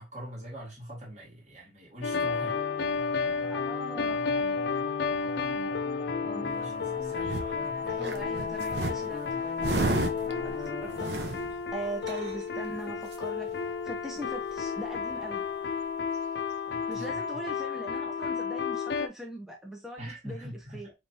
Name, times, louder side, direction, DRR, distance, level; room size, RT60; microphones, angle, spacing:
voice 1, 0.0-3.1 6.2-6.7 7.0-8.1 16.7-17.2 20.0-20.9, equal, 40° right, 1.9 m, -43 dB
sound 1, 2.0-19.1, left 5 dB, 65° left, 0.4 m, -32 dB
sound 2, 2.1-11.0, left 2 dB, 40° left, 0.8 m, -42 dB
voice 2, 3.5-4.2 6.3-6.7 7.9-9.8 10.4-11.4 11.7-15.5 16.9-20.9, right 1 dB, 5° right, 0.7 m, -41 dB
sound 3, 6.6-7.6 8.0-12.7 13.1-13.2 13.4-13.9 14.2-14.3 14.4-15.3 16.1-16.2, right 2 dB, 70° right, 0.7 m, -33 dB
5.1 x 3.1 x 2.7 m
head